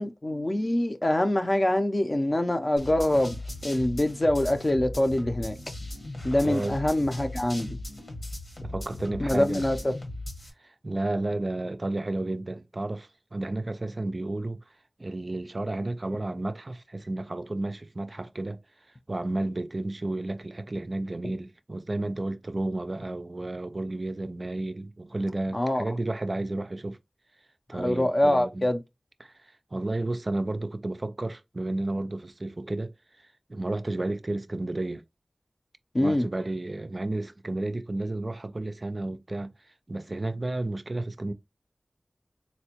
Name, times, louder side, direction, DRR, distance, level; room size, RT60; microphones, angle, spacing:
voice 1, 0.0-5.6 6.2-7.8 9.2-9.9 25.5-25.8 27.7-28.8 35.9-36.3, left 1 dB, 35° left, 0.5 m, -25 dB
sound 1, 2.8-10.5, left 1 dB, 65° left, 1.1 m, -38 dB
voice 2, 6.3-6.8 8.6-9.6 10.6-14.6 15.0-18.6 19.1-27.0 27.7-28.7 29.2-35.0 36.0-39.5 39.9-41.3, right 2 dB, 45° right, 0.3 m, -32 dB
4.1 x 2.2 x 2.8 m
wide cardioid pair, 75°, 0 cm